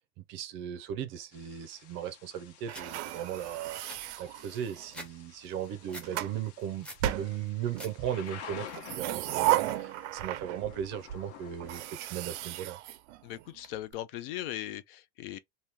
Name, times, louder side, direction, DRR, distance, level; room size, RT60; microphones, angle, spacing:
voice 1, 0.3-3.8 4.2-12.8, right 10 dB, 35° right, 0.5 m, -37 dB
Thunder / Rain, 1.3-11.9, left 8 dB, 75° left, 1.1 m, -51 dB
sound 1, 2.7-2.9 3.3-3.4 3.7-5.1 5.4-6.1 6.5-7.1 7.5-7.9 8.2-8.7, equal, 5° left, 0.6 m, -46 dB
sound 2, 2.7-5.0 5.7-6.4 7.0-7.9 8.6-10.8 11.1-11.2 11.6-13.7, right 15 dB, 85° right, 0.6 m, -34 dB
voice 2, 13.2-15.4, left 13 dB, 55° left, 0.5 m, -39 dB
3.0 x 2.7 x 3.5 m
supercardioid pair, 170°, 34 cm